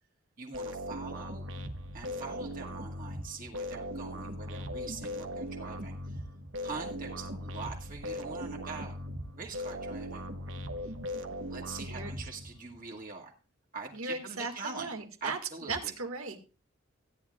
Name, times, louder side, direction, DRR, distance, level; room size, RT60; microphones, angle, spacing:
voice 1, 0.4-1.4 1.9-6.2 6.6-8.9 9.4-10.3 11.5-13.3 13.7-14.9 15.2-15.9, right 4 dB, 40° right, 0 dB, 1.8 m, -43 dB
sound 1, 0.5-12.8, equal, 60° right, 1.2 m, -39 dB
voice 2, 13.9-15.4 15.7-16.4, right 3 dB, 80° right, 5 dB, 1.8 m, -37 dB
16.5 x 10.0 x 2.3 m, 0.32 s
head